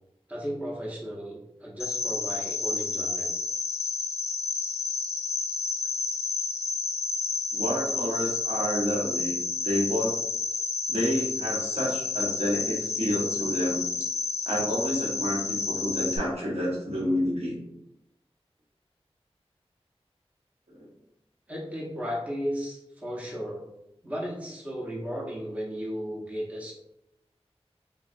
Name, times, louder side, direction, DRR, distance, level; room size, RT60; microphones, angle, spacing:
voice 1, 0.3-3.3 21.5-23.6 24.0-26.7, equal, 15° right, -4 dB, 0.6 m, -35 dB
Cricket, 1.8-16.2, left 4 dB, 85° left, 0.4 m, -30 dB
voice 2, 7.5-10.1 10.9-14.1 14.4-17.6 20.7-20.9, equal, 70° right, -5 dB, 1.0 m, -29 dB
3.1 x 2.3 x 2.5 m, 0.84 s
wide cardioid pair, 60°, 11 cm